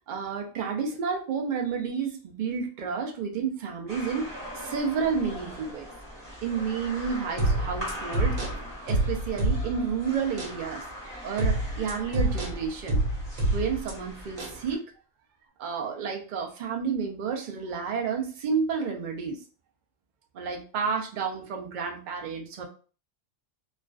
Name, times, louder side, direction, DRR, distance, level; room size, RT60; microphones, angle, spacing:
voice 1, 0.1-5.9 6.4-10.9 11.2-13.0 13.5-14.9 15.6-19.4 20.3-22.6, right 6 dB, 60° right, 2 dB, 0.5 m, -31 dB
sound 1, 3.9-14.8, equal, 25° right, 0.9 m, -41 dB
sound 2, 7.4-9.9 10.4-10.6 11.4-13.9 14.4-14.6, right 1 dB, 90° right, 1.2 m, -27 dB
2.4 x 2.3 x 2.3 m, 0.38 s
omnidirectional pair, 1.3 m